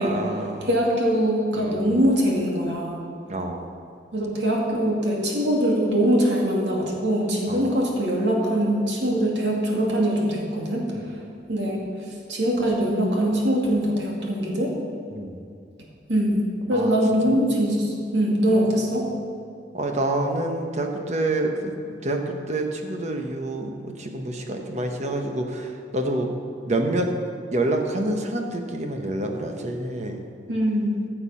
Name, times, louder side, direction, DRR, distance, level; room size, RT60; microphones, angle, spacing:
voice 1, 0.0-0.7 1.5-2.0 3.3-3.7 7.5-7.6 10.9-11.0 15.1-15.4 16.7-17.0 18.6-18.7 19.7-21.7 22.0-26.3 26.6-27.1 27.5-30.3, right 2 dB, 40° right, 3 dB, 1.1 m, -27 dB
voice 2, 0.6-3.0 4.1-10.8 11.5-11.9 12.3-14.7 16.1-19.0 30.5-31.0, equal, 80° right, -2 dB, 2.3 m, -22 dB
14.5 x 6.9 x 5.7 m, 2.3 s
head